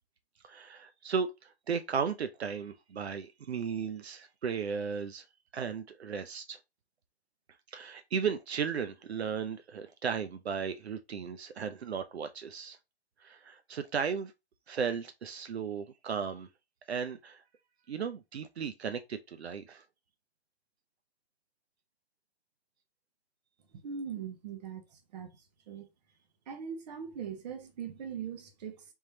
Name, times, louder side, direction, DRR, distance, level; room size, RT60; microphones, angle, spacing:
voice 1, 0.4-5.2 5.5-6.6 7.7-12.8 13.2-14.3 14.7-16.5 16.9-17.4 17.9-19.8, right 6 dB, 80° right, 0.6 m, -35 dB
voice 2, 23.7-24.8 25.1-25.4 25.7-25.9 26.5-28.8, right 7 dB, 40° right, 0.9 m, -40 dB
3.7 x 3.0 x 2.8 m
hypercardioid pair, 140°, 32 cm